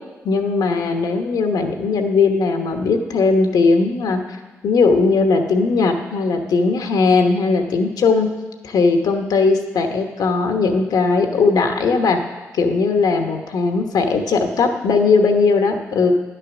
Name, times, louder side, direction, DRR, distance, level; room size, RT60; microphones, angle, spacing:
voice 1, 0.2-4.4 4.6-8.3 8.6-12.2 12.5-16.1, left 4 dB, 80° left, 5 dB, 1.1 m, -18 dB
11.0 x 6.8 x 6.1 m, 1.2 s
supercardioid pair, 40°, 7 cm